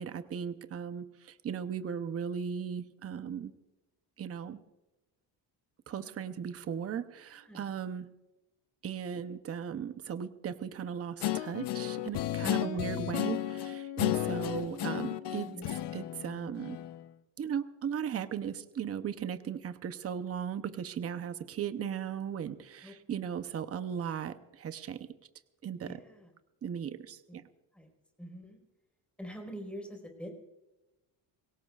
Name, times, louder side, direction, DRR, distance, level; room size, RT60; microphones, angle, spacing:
voice 1, 0.0-3.5 4.2-4.6 5.9-8.1 8.8-15.5 15.9-16.8 17.4-25.0 25.6-25.9 26.6-27.4, right 8 dB, 35° right, 10 dB, 0.8 m, -37 dB
voice 2, 7.3-7.7 12.6-12.9 15.4-15.7 22.8-22.9 25.8-26.3 27.7-27.9 28.2-28.6 29.2-30.3, equal, 5° left, 2 dB, 4.4 m, -45 dB
Guitar, 11.2-17.0, left 13 dB, 65° left, 0.8 m, -33 dB
24.0 x 18.0 x 2.4 m, 1.0 s
cardioid pair, 150°, 44 cm